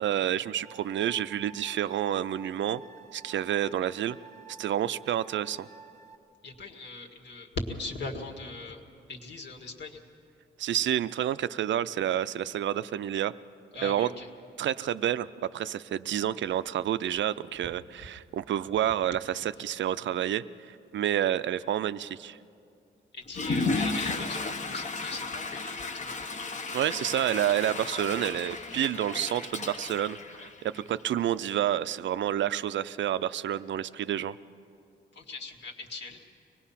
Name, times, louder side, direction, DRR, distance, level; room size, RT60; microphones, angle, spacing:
voice 1, 0.0-2.8 3.1-4.2 4.6-5.7 10.6-13.3 13.8-14.1 14.6-22.4 26.7-34.4, right 11 dB, 75° right, 14 dB, 0.5 m, -29 dB
sound 1, 0.6-6.2, right 6 dB, 35° right, 0.8 m, -51 dB
voice 2, 6.4-8.8 9.1-10.0 13.7-14.3 23.1-26.2 35.1-36.2, left 3 dB, 65° left, 1 dB, 1.9 m, -40 dB
Water / Toilet flush, 23.3-31.0, left 3 dB, 40° left, 0.9 m, -34 dB
24.5 x 19.5 x 5.8 m, 2.4 s
wide cardioid pair, 160°, 19 cm